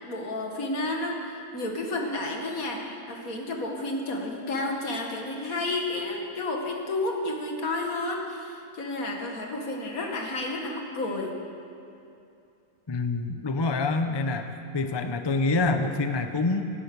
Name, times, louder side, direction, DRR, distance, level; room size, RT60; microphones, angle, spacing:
voice 1, 0.1-11.4, left 2 dB, 75° left, 1 dB, 2.3 m, -31 dB
voice 2, 12.9-16.6, left 3 dB, 25° left, 7 dB, 0.5 m, -26 dB
17.5 x 10.5 x 6.9 m, 2.6 s
omnidirectional pair, 1.5 m